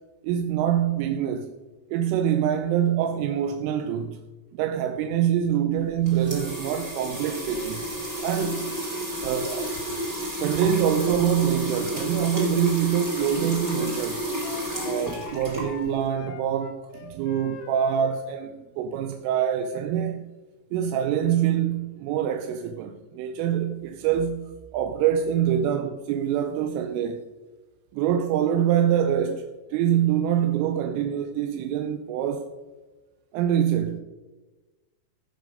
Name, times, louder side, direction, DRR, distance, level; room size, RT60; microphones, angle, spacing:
voice 1, 0.2-1.5 1.9-4.2 4.5-7.8 8.2-8.7 9.2-9.8 10.2-14.3 14.8-20.2 20.7-27.2 27.9-29.5 29.7-32.5 33.3-34.0, right 9 dB, 85° right, 3.1 m, -25 dB
sound 1, 5.8-16.1, equal, 25° right, 1.5 m, -31 dB
Wind instrument woodwind instrument, 13.1-18.2, left 8 dB, 75° left, 2.8 m, -43 dB
18.0 x 6.3 x 5.2 m
omnidirectional pair, 6.0 m